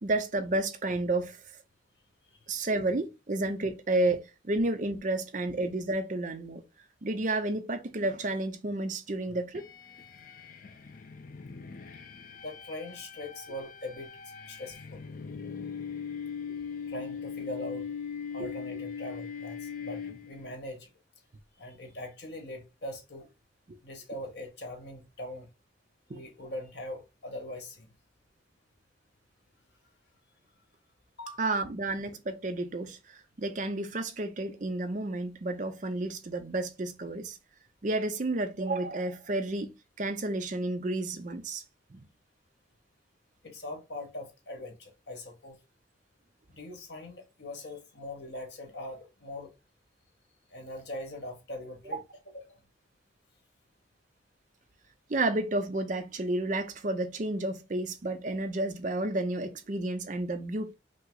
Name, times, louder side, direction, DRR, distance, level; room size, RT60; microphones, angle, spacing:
voice 1, 0.0-1.4 2.5-6.6 7.0-9.6 18.4-18.5 26.1-26.2 31.4-37.4 37.8-41.6 41.9-42.0 55.1-60.7, right 2 dB, 40° right, 0.5 m, -31 dB
voice 2, 2.2-2.6 12.4-14.1 14.5-15.0 16.9-17.9 18.3-20.0 20.3-20.9 21.6-23.3 23.8-25.5 26.1-27.9 31.2-31.4 43.4-45.6 46.5-49.5 50.5-52.6, left 1 dB, 60° left, 1.2 m, -41 dB
sound 1, 9.5-20.6, left 6 dB, 45° left, 0.5 m, -40 dB
5.3 x 2.0 x 3.7 m
head